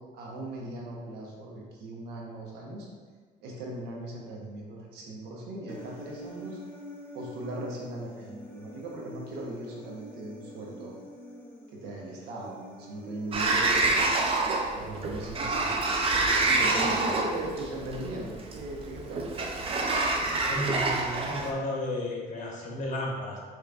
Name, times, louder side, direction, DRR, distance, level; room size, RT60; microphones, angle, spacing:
voice 1, 0.1-2.9 3.4-6.6 7.1-10.9 11.8-14.1 14.7-16.0 16.5-19.3, right 1 dB, 85° right, -2 dB, 0.9 m, -38 dB
Human voice, 5.7-13.7, equal, 10° left, 0.9 m, -46 dB
Sliding door, 13.3-21.5, right 3 dB, 35° right, 0.5 m, -27 dB
voice 2, 16.6-16.9 20.4-23.4, left 1 dB, 50° left, -2 dB, 1.2 m, -33 dB
5.4 x 3.1 x 2.4 m, 1.5 s
cardioid pair, 110°, 17 cm